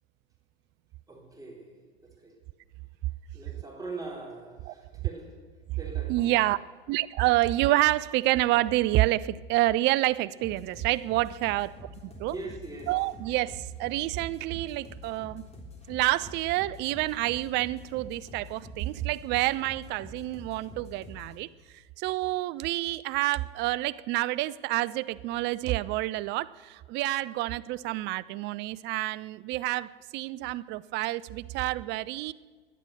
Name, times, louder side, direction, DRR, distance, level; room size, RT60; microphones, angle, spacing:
voice 1, 1.1-1.7 2.0-2.3 3.3-5.3 5.7-6.3 12.3-12.9, right 3 dB, 10° right, -1 dB, 3.6 m, -41 dB
voice 2, 6.1-6.6 6.9-11.7 12.2-12.3 12.9-15.4 15.9-21.5 21.7-32.3, right 17 dB, 35° right, 17 dB, 0.5 m, -28 dB
sound 1, 10.4-21.4, left 1 dB, 20° left, 3.5 m, -46 dB
17.5 x 11.5 x 6.7 m, 1.5 s
figure-of-eight pair, 90°, 31 cm